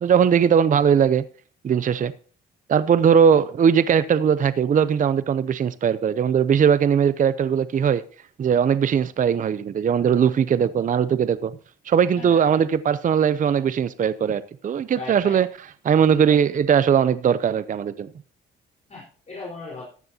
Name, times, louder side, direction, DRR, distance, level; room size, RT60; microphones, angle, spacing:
voice 1, 0.0-1.2 1.6-2.1 2.7-8.0 8.4-11.5 11.9-15.5 15.8-18.1, right 7 dB, 40° right, 15 dB, 0.6 m, -19 dB
voice 2, 12.1-12.6 14.9-15.4 18.9-19.8, left 3 dB, 35° left, -5 dB, 4.3 m, -37 dB
14.5 x 11.0 x 2.8 m, 0.42 s
cardioid pair, 90°, 20 cm